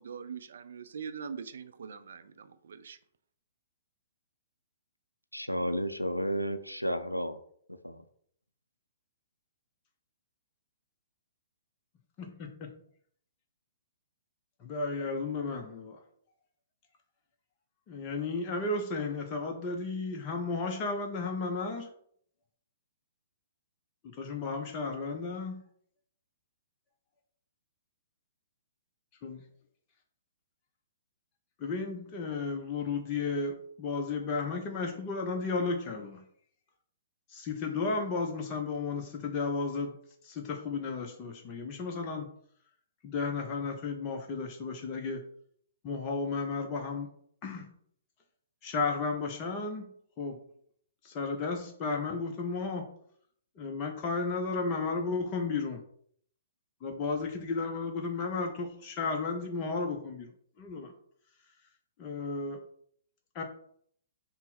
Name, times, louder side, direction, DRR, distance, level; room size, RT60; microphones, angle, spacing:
voice 1, 0.0-3.0, right 6 dB, 60° right, 12 dB, 0.4 m, -42 dB
voice 2, 5.3-7.4 7.8-8.0, equal, 90° left, 9 dB, 0.4 m, -32 dB
voice 3, 12.2-12.7 14.6-16.0 17.9-21.9 24.1-25.6 29.2-29.4 31.6-36.2 37.3-40.0 40.2-42.3 43.0-45.3 45.8-47.1 47.4-47.7 48.6-49.9 50.2-50.4 51.0-52.9 53.6-55.8 56.8-60.3 60.6-60.9 62.0-62.6 63.3-63.4, left 4 dB, 30° left, 2 dB, 0.6 m, -33 dB
5.4 x 2.0 x 4.1 m, 0.63 s
figure-of-eight pair, 115°, 0 cm